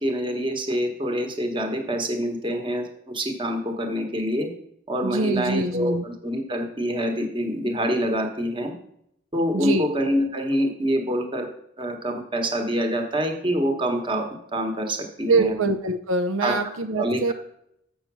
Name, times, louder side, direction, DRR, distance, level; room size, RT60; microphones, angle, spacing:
voice 1, 0.0-4.5 4.9-8.7 9.3-11.5 11.8-15.6 16.4-16.6 17.0-17.3, equal, 25° right, 4 dB, 1.2 m, -26 dB
voice 2, 5.0-6.0 9.5-9.8 15.3-17.3, right 3 dB, 80° right, 8 dB, 0.6 m, -24 dB
7.1 x 6.6 x 6.1 m, 0.75 s
head